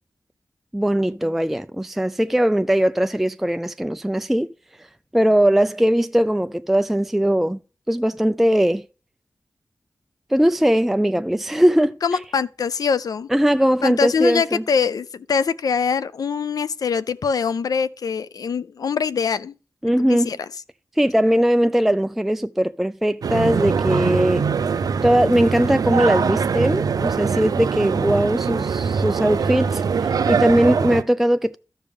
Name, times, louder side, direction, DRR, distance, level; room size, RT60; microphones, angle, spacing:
voice 1, 0.7-4.5 5.1-7.6 7.9-8.8 10.3-12.0 13.3-14.6 19.8-20.3 21.0-24.5 25.0-31.6, equal, 5° right, 0.3 m, -20 dB
voice 2, 12.0-13.3 13.8-19.5 19.9-20.4, left 6 dB, 80° left, 0.4 m, -23 dB
sound 1, 23.2-31.0, right 6 dB, 80° right, 0.4 m, -22 dB
13.5 x 5.2 x 3.5 m
wide cardioid pair, 75°, 6 cm